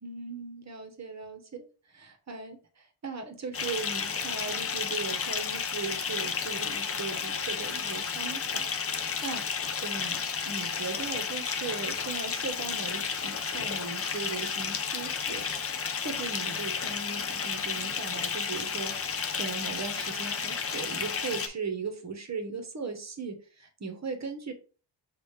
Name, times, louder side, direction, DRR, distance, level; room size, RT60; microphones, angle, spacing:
voice 1, 0.0-8.7 9.2-15.5 16.0-24.5, right 4 dB, 35° right, 6 dB, 1.0 m, -38 dB
Bathtub (filling or washing) / Fill (with liquid), 3.5-21.5, left 6 dB, 30° left, 0.4 m, -32 dB
6.1 x 2.5 x 3.2 m, 0.37 s
wide cardioid pair, 95°, 46 cm